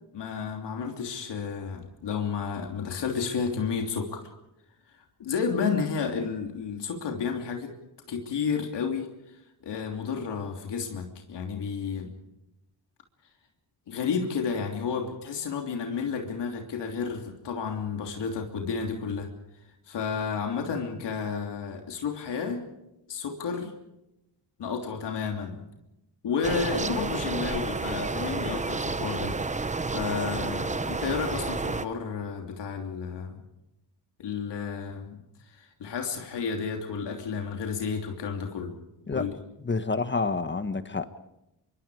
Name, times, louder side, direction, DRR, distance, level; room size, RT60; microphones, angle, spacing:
voice 1, 0.1-4.3 4.9-7.7 8.1-9.4 9.6-12.1 13.9-19.3 19.9-22.6 23.1-23.7 24.6-25.6 26.2-29.4 29.9-33.4 34.2-38.7 39.1-39.4, left 6 dB, 75° left, 3 dB, 3.1 m, -31 dB
sound 1, 26.4-31.8, right 3 dB, 15° right, 1.0 m, -30 dB
voice 2, 39.6-41.2, left 4 dB, 25° left, 11 dB, 1.4 m, -29 dB
26.5 x 23.5 x 4.9 m, 0.87 s
cardioid pair, 105°, 42 cm